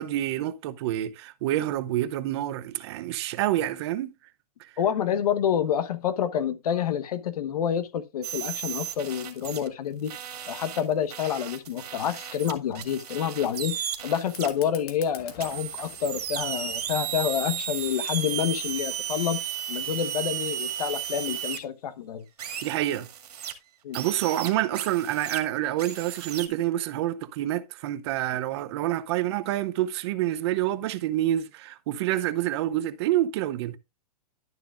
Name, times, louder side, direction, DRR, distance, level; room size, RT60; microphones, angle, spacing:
voice 1, 0.0-4.1 4.6-4.7 22.6-23.1 23.9-33.8, right 13 dB, 45° right, 0.7 m, -27 dB
voice 2, 4.8-10.1 10.5-22.2 23.8-24.0, left 9 dB, 75° left, 1.2 m, -28 dB
sound 1, 8.2-9.7 10.1-14.5 15.4-21.6 22.4-23.5 23.9-25.4 25.8-26.5, right 10 dB, 80° right, 2.2 m, -34 dB
Fire, 14.2-19.2, left 8 dB, 40° left, 1.6 m, -49 dB
12.0 x 6.7 x 2.5 m
hypercardioid pair, 150°, 20 cm